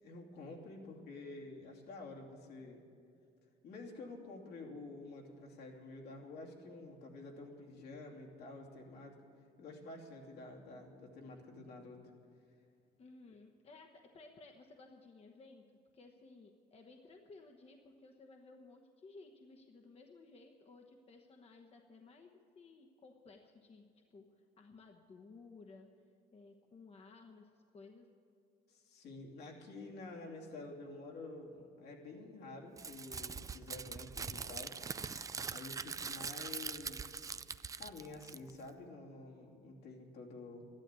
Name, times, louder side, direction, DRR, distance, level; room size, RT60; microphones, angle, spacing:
voice 1, 0.0-2.8 3.6-9.2 9.6-12.0 28.7-34.8 35.1-37.2 37.8-40.6, left 3 dB, 75° left, -1 dB, 2.9 m, -49 dB
voice 2, 13.0-15.6 15.9-23.9 24.1-25.9 26.3-28.1, left 3 dB, 35° left, 3 dB, 1.1 m, -57 dB
Crumpling crinkling, 32.8-38.7, right 5 dB, 20° right, 0.3 m, -43 dB
13.5 x 11.5 x 8.3 m, 2.5 s
cardioid pair, 110°, 17 cm